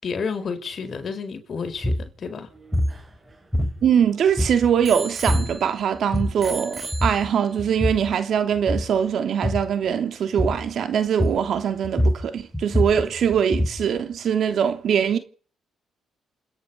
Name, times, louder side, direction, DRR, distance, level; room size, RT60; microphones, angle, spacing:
voice 1, 0.0-2.5, left 5 dB, 50° left, 4.9 m, -30 dB
sound 1, 1.8-2.1 2.7-3.0 3.5-4.0 4.4-4.9 5.3-5.6 6.0-6.5 6.9-7.3 7.6-8.1 8.6-9.0 9.4-9.7 10.4-10.7 11.2-11.6 11.8-13.9, equal, ahead, 5.0 m, -24 dB
Bicycle bell, 2.5-4.2 4.8-6.0 6.4-7.7 8.4-8.5, right 3 dB, 25° right, 6.3 m, -37 dB
voice 2, 3.8-15.2, right 8 dB, 65° right, 3.1 m, -22 dB
29.5 x 10.0 x 8.6 m
cardioid pair, 90°, 0 cm